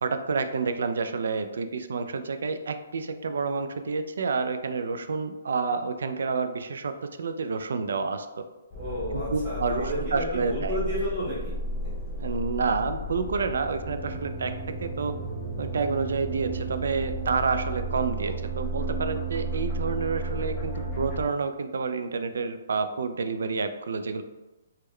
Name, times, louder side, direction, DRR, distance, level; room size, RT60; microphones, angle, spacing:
voice 1, 0.0-8.4 9.1-10.8 12.2-14.5 14.8-15.1 15.6-24.2, right 4 dB, 75° right, 9 dB, 0.3 m, -29 dB
sound 1, 8.7-21.2, right 1 dB, 15° left, 0.6 m, -33 dB
voice 2, 8.8-11.9, equal, 15° right, -9 dB, 1.1 m, -32 dB
3.6 x 2.2 x 3.1 m, 1.1 s
hypercardioid pair, 170°, 0 cm